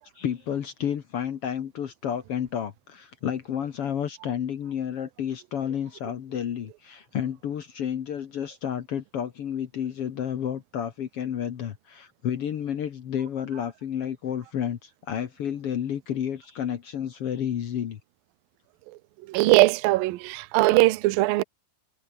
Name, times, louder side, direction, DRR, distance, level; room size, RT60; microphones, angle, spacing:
voice 1, 0.1-18.0, left 9 dB, 80° left, 1.3 m, -31 dB
voice 2, 19.3-21.4, right 19 dB, 75° right, 2.3 m, -20 dB
omnidirectional pair, 4.9 m